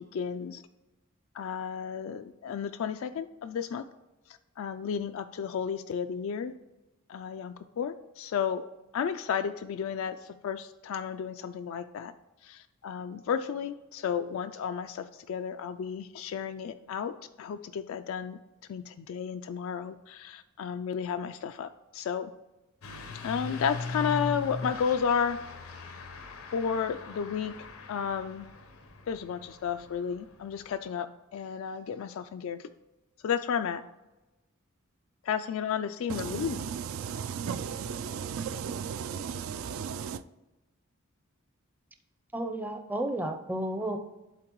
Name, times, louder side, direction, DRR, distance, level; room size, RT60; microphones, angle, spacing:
voice 1, 0.1-0.6 1.3-3.8 4.6-6.5 7.1-8.6 8.9-12.1 12.4-18.4 18.7-22.3 23.2-25.4 26.5-27.5 27.9-28.5 29.1-31.1 31.3-32.7 33.2-33.8 35.2-36.6, left 7 dB, 70° left, 8 dB, 0.3 m, -32 dB
Truck / Accelerating revving vroom, 22.8-30.8, left 3 dB, 90° left, 0.9 m, -40 dB
voice 2, 36.1-40.2, right 7 dB, 70° right, 13 dB, 0.3 m, -35 dB
voice 3, 42.3-44.0, right 1 dB, 10° right, 5 dB, 0.5 m, -32 dB
11.5 x 3.9 x 3.0 m, 1.1 s
head